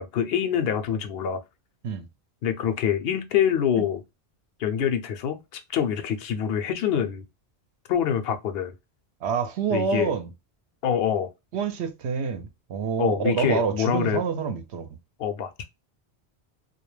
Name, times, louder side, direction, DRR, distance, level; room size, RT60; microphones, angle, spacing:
voice 1, 0.0-1.4 2.4-4.0 4.6-7.2 7.9-8.7 9.7-10.1 10.8-11.3 13.0-14.2 15.2-15.7, left 8 dB, 70° left, 0.7 m, -25 dB
voice 2, 9.2-10.3 11.5-14.9, right 6 dB, 80° right, 0.8 m, -27 dB
2.3 x 2.1 x 3.1 m
omnidirectional pair, 1.1 m